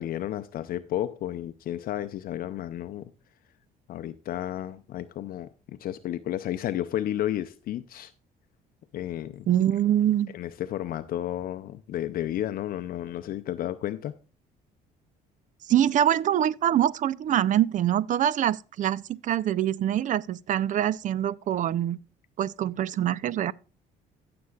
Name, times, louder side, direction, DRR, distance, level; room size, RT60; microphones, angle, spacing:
voice 1, 0.0-3.0 3.9-8.1 8.9-9.5 10.3-14.1, left 12 dB, 60° left, 0.5 m, -32 dB
voice 2, 9.5-10.3 15.7-22.0 22.4-23.5, right 11 dB, 50° right, 0.5 m, -24 dB
16.0 x 6.9 x 2.3 m
cardioid pair, 110°, 17 cm